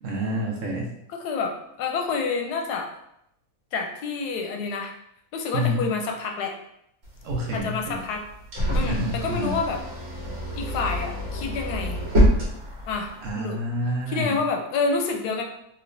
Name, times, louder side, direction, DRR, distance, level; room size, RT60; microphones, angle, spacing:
voice 1, 0.0-0.9 5.5-5.9 7.2-8.0 8.8-9.6 13.2-14.4, equal, 65° right, -2 dB, 0.9 m, -28 dB
voice 2, 1.1-2.9 3.7-4.9 5.3-6.5 7.5-8.2 8.7-9.8 10.5-12.0 12.9-13.6 14.1-15.4, left 4 dB, 85° left, 2 dB, 1.2 m, -28 dB
sound 1, 7.0-13.3, equal, 45° right, 1.2 m, -26 dB
3.2 x 2.8 x 2.6 m, 0.76 s
omnidirectional pair, 1.7 m